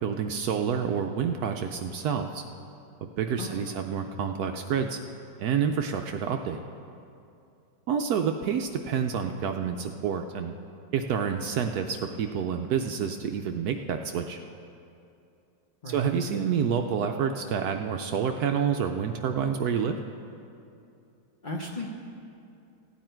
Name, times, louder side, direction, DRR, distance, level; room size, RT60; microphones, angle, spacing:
voice 1, 0.0-2.4 3.0-5.0 5.4-6.6 7.9-10.5 10.9-14.4 15.9-20.0, right 7 dB, 70° right, 5 dB, 1.0 m, -28 dB
voice 2, 3.4-3.7 15.8-16.1 21.4-21.9, left 1 dB, 35° left, -1 dB, 0.9 m, -36 dB
15.5 x 9.6 x 4.5 m, 2.5 s
omnidirectional pair, 1.9 m